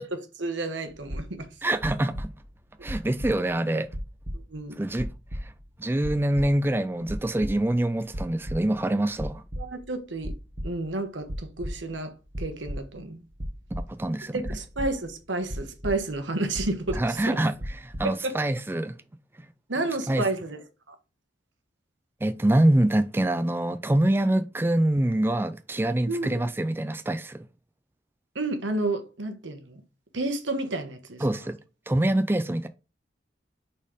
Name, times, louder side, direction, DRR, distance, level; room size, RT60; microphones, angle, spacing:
voice 1, 0.0-1.5 4.3-4.8 9.6-10.3 10.6-13.2 14.3-17.4 18.0-18.3 19.7-20.9 26.1-26.4 28.3-29.8 30.1-31.2, right 2 dB, 90° right, 1.3 m, -31 dB
sound 1, 0.9-1.5 1.8-2.6 2.9-3.6 3.9-4.7 5.0-5.7 6.0-6.8 7.0-7.8 8.1-8.8 9.1-9.9 10.2-11.0 11.3-12.1 12.3-13.0 13.4-15.2 15.5-16.3 16.6-17.3 17.6-18.0, equal, 35° right, 1.6 m, -36 dB
voice 2, 1.6-2.3 2.8-3.9 4.8-5.1 5.4-5.5 5.8-9.4 13.9-14.4 16.9-18.9 19.4-19.5 20.1-20.2 22.2-27.4 31.2-31.6 31.9-32.7, right 1 dB, 10° right, 0.4 m, -25 dB
5.5 x 4.2 x 4.9 m
head